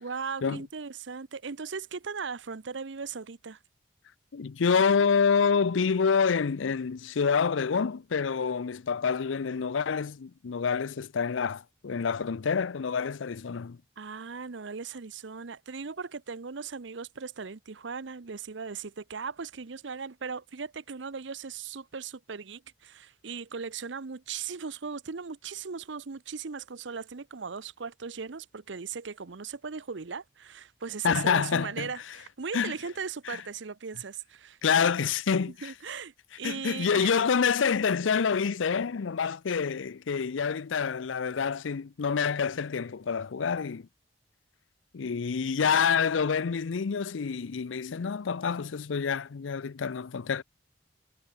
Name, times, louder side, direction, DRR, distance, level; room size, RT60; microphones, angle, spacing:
voice 1, 0.0-3.6 14.0-34.6 35.6-37.2, right 5 dB, 75° right, 0.7 m, -38 dB
voice 2, 4.3-13.8 31.0-31.9 32.5-32.7 33.3-33.4 34.6-35.7 36.4-43.9 44.9-50.4, left 6 dB, 90° left, 0.5 m, -27 dB
head